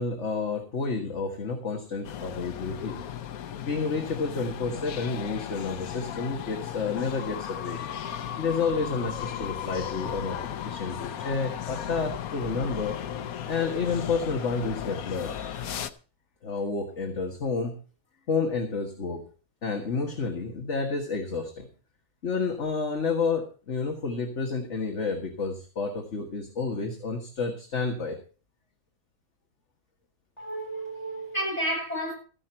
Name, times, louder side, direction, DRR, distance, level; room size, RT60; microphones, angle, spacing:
voice 1, 0.0-3.0 3.6-7.8 8.4-13.0 13.4-15.3 16.4-17.7 18.3-19.2 19.6-21.7 22.2-28.2, left 4 dB, 55° left, 1.9 m, -30 dB
sound 1, 2.0-15.9, left 9 dB, 85° left, 1.3 m, -36 dB
voice 2, 30.4-32.1, right 1 dB, 30° left, 7.8 m, -31 dB
14.0 x 11.0 x 4.4 m
omnidirectional pair, 1.5 m